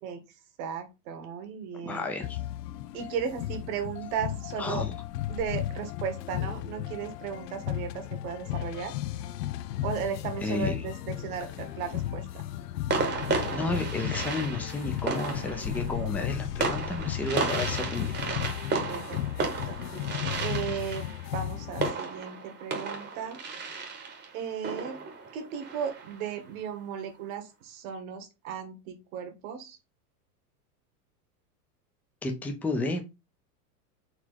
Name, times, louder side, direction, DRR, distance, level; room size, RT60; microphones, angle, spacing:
voice 1, 0.6-2.1 2.9-4.8 5.3-8.9 9.8-12.4 18.7-19.8 20.4-23.4 24.3-25.0 25.3-29.8, right 7 dB, 60° right, 7 dB, 1.3 m, -36 dB
voice 2, 1.8-2.4 4.6-4.9 10.4-10.8 13.5-18.2 18.6-18.7 32.2-33.0, left 2 dB, 5° left, 3 dB, 0.5 m, -32 dB
Prominent Cymbals and Xylophones, 2.2-21.9, left 12 dB, 85° left, 0.6 m, -35 dB
sound 1, 11.6-12.0 12.9-26.3, right 4 dB, 20° right, 1.0 m, -34 dB
4.2 x 2.8 x 4.5 m, 0.26 s
supercardioid pair, 125°, 47 cm